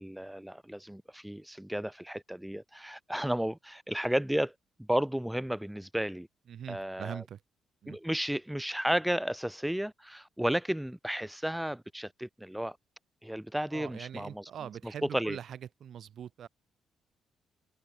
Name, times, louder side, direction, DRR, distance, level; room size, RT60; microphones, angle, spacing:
voice 1, 0.0-4.5 4.8-6.3 6.7-7.2 7.9-12.8 13.2-14.4 15.0-15.4, equal, 5° right, 0.5 m, -33 dB
voice 2, 6.5-7.4 7.8-8.0 13.7-16.5, right 9 dB, 60° right, 1.4 m, -42 dB
cardioid pair, 90°, 0 cm